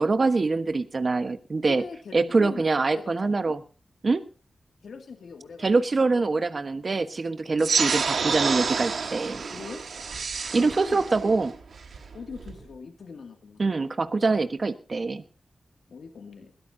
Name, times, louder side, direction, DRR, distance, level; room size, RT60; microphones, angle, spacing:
voice 1, 0.0-1.8 2.1-3.6 4.0-4.2 5.6-9.4 10.5-11.5 13.6-15.2, right 3 dB, 50° right, 9 dB, 1.2 m, -24 dB
voice 2, 1.7-2.6 2.9-3.1 4.8-5.9 7.5-7.8 9.5-9.8 10.6-11.0 12.1-13.6 15.9-16.5, left 5 dB, 90° left, 4 dB, 2.3 m, -41 dB
sound 1, 7.6-12.6, right 5 dB, 85° right, 2.4 m, -29 dB
21.5 x 16.0 x 2.8 m, 0.36 s
cardioid pair, 65°, 0 cm